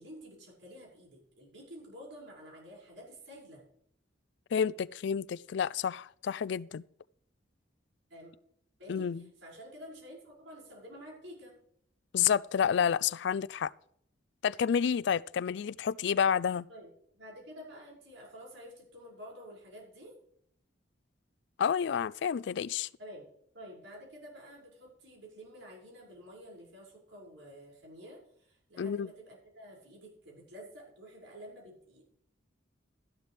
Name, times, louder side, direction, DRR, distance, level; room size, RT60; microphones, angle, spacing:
voice 1, 0.0-3.6 8.1-8.3 8.8-11.5 16.7-20.1 23.0-23.2 23.5-32.0, equal, 90° right, 5.9 m, -50 dB
voice 2, 4.5-6.8 8.9-9.2 12.1-13.7 14.4-16.7 21.6-22.9 28.8-29.1, left 7 dB, 65° left, 0.3 m, -29 dB
13.0 x 11.5 x 3.4 m
head